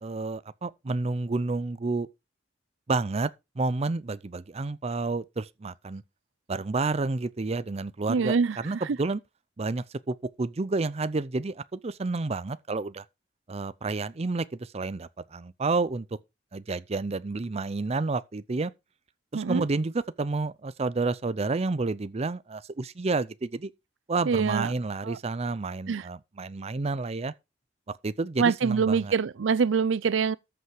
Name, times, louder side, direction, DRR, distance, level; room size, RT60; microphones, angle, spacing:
voice 1, 0.0-2.1 2.9-3.3 3.6-6.0 6.5-9.2 9.6-13.0 13.5-16.1 16.5-18.7 19.3-23.7 24.1-27.3 27.9-29.1, right 3 dB, 35° right, 0.5 m, -30 dB
voice 2, 8.1-8.6 19.3-19.6 24.3-24.7 25.0-25.2 25.9-26.0 28.4-30.4, right 5 dB, 90° right, 0.5 m, -24 dB
13.5 x 5.5 x 4.9 m
head